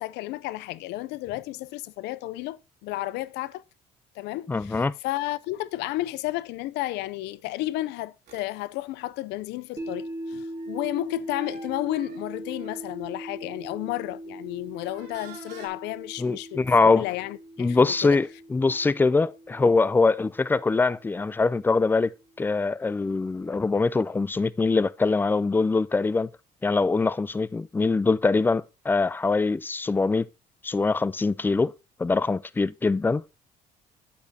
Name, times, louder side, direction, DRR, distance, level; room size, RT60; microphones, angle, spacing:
voice 1, 0.0-3.6 4.2-18.2, left 16 dB, 90° left, 0.5 m, -32 dB
voice 2, 4.5-4.9 16.2-17.1 17.6-22.1 22.4-26.3 26.6-30.3 30.6-31.7 32.0-33.2, left 3 dB, 10° left, 0.3 m, -23 dB
sound 1, 8.3-8.5 10.5-13.1 13.7-13.9 14.8-15.7, right 4 dB, 75° right, 3.0 m, -48 dB
sound 2, 9.8-21.9, right 1 dB, 20° right, 1.5 m, -40 dB
8.4 x 8.3 x 2.7 m
cardioid pair, 110°, 17 cm